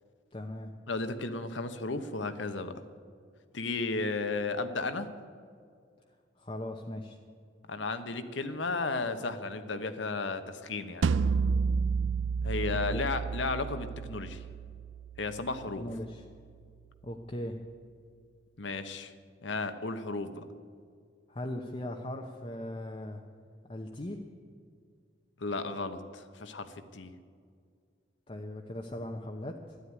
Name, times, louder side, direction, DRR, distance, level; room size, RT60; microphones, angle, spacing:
voice 1, 0.3-0.7 6.4-7.2 12.9-13.0 15.8-16.2 17.0-17.6 21.3-23.2 23.7-24.2 28.3-29.8, left 1 dB, 30° left, 2 dB, 0.8 m, -39 dB
voice 2, 0.9-2.8 3.5-5.1 7.7-11.1 12.4-14.4 15.2-15.9 18.6-19.1 19.4-20.4 25.4-27.1, left 3 dB, 70° left, 9 dB, 1.0 m, -34 dB
sound 1, 11.0-16.1, right 5 dB, 75° right, 0.4 m, -31 dB
13.0 x 11.5 x 9.5 m, 2.1 s
head